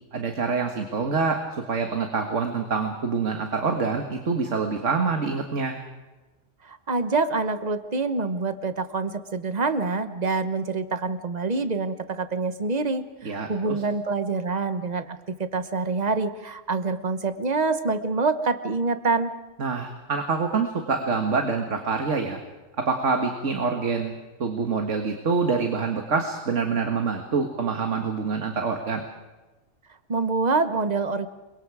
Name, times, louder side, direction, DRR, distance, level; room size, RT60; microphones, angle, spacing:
voice 1, 0.1-5.8 13.2-13.8 19.6-22.4 22.8-29.0, right 4 dB, 85° right, 4 dB, 2.0 m, -26 dB
voice 2, 6.6-19.3 30.1-31.3, right 3 dB, 35° right, 10 dB, 1.2 m, -26 dB
28.5 x 23.5 x 4.9 m, 1.2 s
omnidirectional pair, 1.2 m